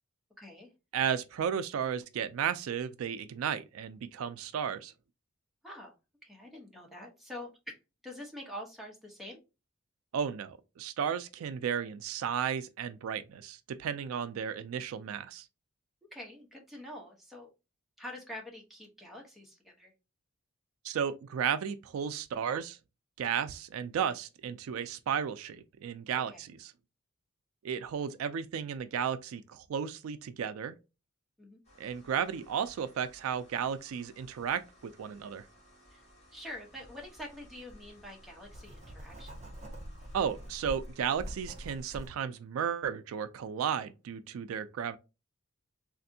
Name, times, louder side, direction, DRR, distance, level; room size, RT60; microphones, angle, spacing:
voice 1, 0.4-0.7 5.6-5.9 6.2-7.8 8.0-9.4 16.1-17.5 18.0-19.9 26.2-26.4 31.4-31.6 35.9-36.1 36.3-39.3, left 1 dB, ahead, 0.8 m, -46 dB
voice 2, 0.9-4.9 10.1-15.4 20.8-22.8 23.2-26.3 27.6-30.8 31.8-35.4 40.1-45.0, right 8 dB, 80° right, 0.3 m, -34 dB
sound 1, 31.6-42.1, equal, 30° left, 1.6 m, -60 dB
Writing, 37.0-37.2 37.7-42.1, equal, 35° right, 0.6 m, -45 dB
3.3 x 2.5 x 2.6 m
head